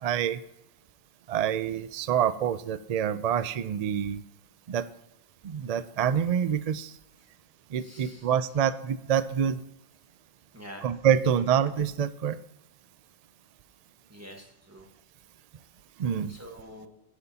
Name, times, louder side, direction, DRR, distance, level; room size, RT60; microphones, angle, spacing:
voice 1, 0.0-0.4 1.3-4.2 4.7-4.9 5.4-6.9 7.7-9.6 10.8-12.4 16.0-16.3, right 8 dB, 70° right, 14 dB, 0.3 m, -26 dB
voice 2, 7.8-8.3 10.5-10.8 14.1-14.9 16.3-16.9, equal, 15° right, 1 dB, 1.4 m, -46 dB
17.0 x 8.1 x 2.8 m, 0.86 s
omnidirectional pair, 1.3 m